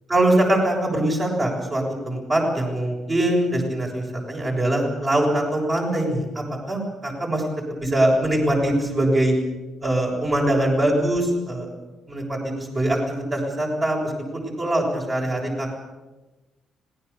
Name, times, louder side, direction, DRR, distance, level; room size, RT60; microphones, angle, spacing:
voice 1, 0.1-9.4 9.8-11.7 12.1-15.8, right 1 dB, 30° right, -1 dB, 7.1 m, -23 dB
26.0 x 18.5 x 7.2 m, 1.1 s
cardioid pair, 90°, 0 cm